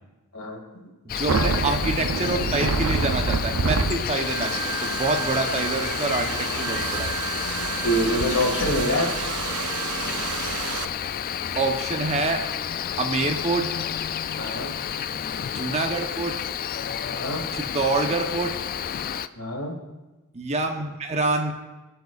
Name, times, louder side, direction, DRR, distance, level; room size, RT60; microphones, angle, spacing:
voice 1, 1.0-4.5 4.8-7.1 11.6-12.4 13.0-13.7 15.5-16.4 17.5-18.6 20.3-21.5, right 3 dB, 30° right, 4 dB, 0.9 m, -26 dB
Cricket, 1.1-19.3, left 8 dB, 40° left, 0.3 m, -30 dB
sound 1, 1.3-10.8, right 5 dB, 75° right, 0.6 m, -28 dB
voice 2, 7.8-9.1 14.4-14.7 17.1-17.4 19.4-19.7, equal, 75° left, 1 dB, 2.2 m, -25 dB
23.5 x 8.0 x 2.5 m, 1.1 s
head